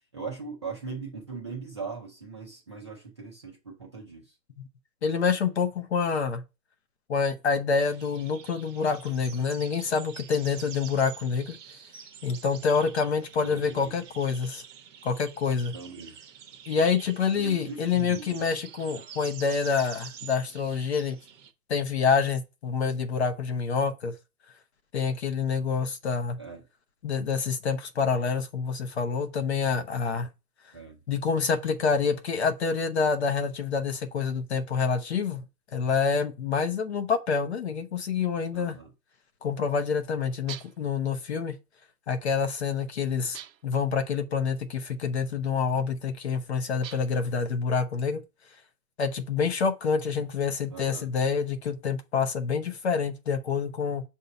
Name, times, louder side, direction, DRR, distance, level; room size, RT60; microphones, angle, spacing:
voice 1, 0.1-4.3 13.4-13.9 15.7-16.2 17.3-18.5 26.4-26.6 30.7-31.0 38.5-38.9 50.7-51.1, right 4 dB, 20° right, 0.5 m, -40 dB
voice 2, 5.0-6.4 7.1-11.6 12.2-14.6 15.0-15.7 16.7-21.2 21.7-24.1 24.9-26.4 27.0-30.3 31.1-35.4 35.7-38.8 39.4-41.6 42.1-48.2 49.0-54.0, left 5 dB, 40° left, 0.7 m, -27 dB
sound 1, 7.7-21.5, right 8 dB, 50° right, 0.8 m, -47 dB
sound 2, 40.5-40.9 43.3-43.8 46.8-47.3, right 10 dB, 80° right, 0.8 m, -43 dB
6.9 x 2.7 x 5.1 m
hypercardioid pair, 170°, 49 cm